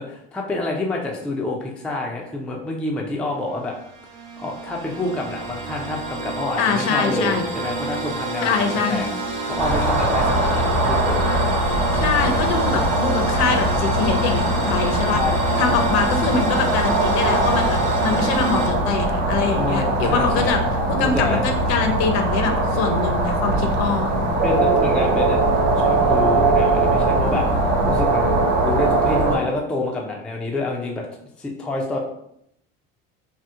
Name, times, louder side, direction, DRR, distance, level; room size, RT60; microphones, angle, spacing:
voice 1, 0.0-3.7 4.4-9.1 9.4-11.3 15.1-15.3 19.5-20.6 21.0-21.5 23.6-23.9 24.4-25.4 25.8-27.5 27.9-31.1 31.4-32.0, left 2 dB, 5° left, -1 dB, 0.3 m, -27 dB
sound 1, 3.5-18.7, right 2 dB, 75° right, 0.9 m, -29 dB
voice 2, 6.6-7.4 8.4-9.1 11.9-15.2 15.6-20.6 20.9-24.1, left 5 dB, 60° left, 5 dB, 0.6 m, -23 dB
sound 2, 9.6-29.4, right 2 dB, 45° right, 1.1 m, -21 dB
2.8 x 2.1 x 3.4 m, 0.77 s
supercardioid pair, 105°, 30 cm